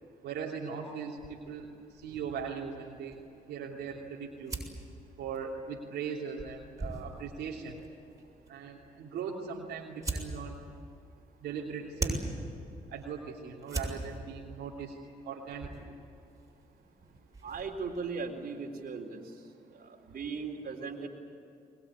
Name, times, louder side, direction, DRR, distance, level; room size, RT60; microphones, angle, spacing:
voice 1, 0.2-3.2 3.5-4.6 5.2-7.8 8.5-10.6 11.4-12.4 12.9-15.0 15.2-16.0 19.8-19.9, right 6 dB, 85° right, -3 dB, 3.0 m, -39 dB
sound 1, 1.2-18.0, right 2 dB, 20° right, 7.1 m, -43 dB
voice 2, 17.4-19.3 19.7-21.1, right 4 dB, 60° right, 2 dB, 4.0 m, -38 dB
22.5 x 21.5 x 9.9 m, 2.6 s
supercardioid pair, 55°, 17 cm